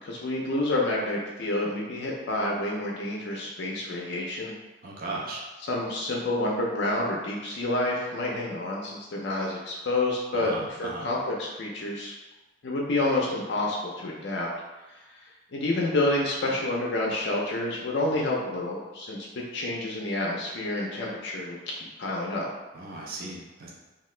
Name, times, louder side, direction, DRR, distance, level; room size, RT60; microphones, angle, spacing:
voice 1, 0.0-4.5 5.6-12.1 12.6-14.5 15.5-22.5, left 2 dB, 55° left, -3 dB, 0.4 m, -29 dB
voice 2, 4.8-5.4 10.3-11.1 22.7-23.7, right 2 dB, 45° right, -3 dB, 0.4 m, -36 dB
2.8 x 2.3 x 3.2 m, 1.1 s
head